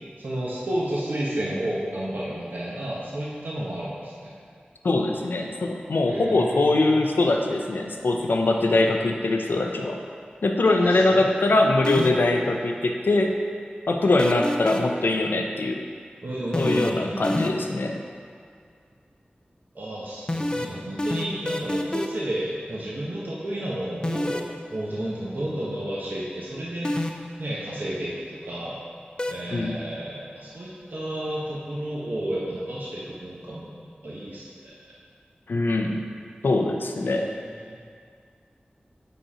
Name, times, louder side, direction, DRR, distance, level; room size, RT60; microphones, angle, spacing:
voice 1, 0.2-4.4 6.1-6.8 10.6-11.3 16.2-17.7 19.7-24.4 24.7-28.8 29.3-33.8 34.0-34.8 37.0-37.8, right 1 dB, 65° right, -6 dB, 0.9 m, -32 dB
voice 2, 4.8-10.0 10.4-13.3 13.9-15.8 16.6-18.0 29.5-29.8 35.5-36.0 36.4-37.3, left 2 dB, 85° left, 3 dB, 0.5 m, -22 dB
sound 1, 11.8-12.4 14.2-15.0 16.5-17.8 20.3-22.3 24.0-24.5 26.8-27.4 29.2-29.3, left 1 dB, 25° left, 0.4 m, -27 dB
5.3 x 4.3 x 4.9 m, 2.2 s
wide cardioid pair, 60°, 3 cm